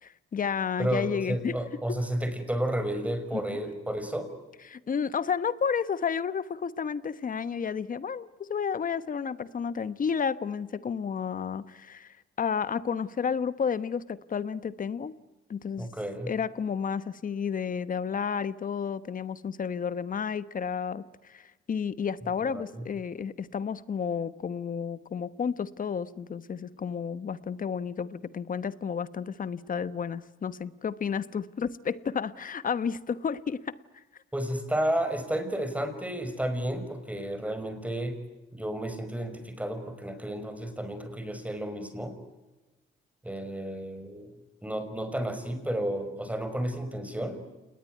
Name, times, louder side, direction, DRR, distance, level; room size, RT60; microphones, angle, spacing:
voice 1, 0.0-1.6 3.3-3.6 4.7-15.1 15.5-15.9 16.3-33.7, left 6 dB, 45° left, 15 dB, 1.2 m, -31 dB
voice 2, 0.8-4.3 15.8-16.3 22.4-22.8 34.3-38.2 38.5-42.2 43.2-44.3 44.6-47.4, right 1 dB, 5° right, 8 dB, 5.6 m, -32 dB
28.5 x 20.0 x 9.4 m, 1.1 s
cardioid pair, 90°, 20 cm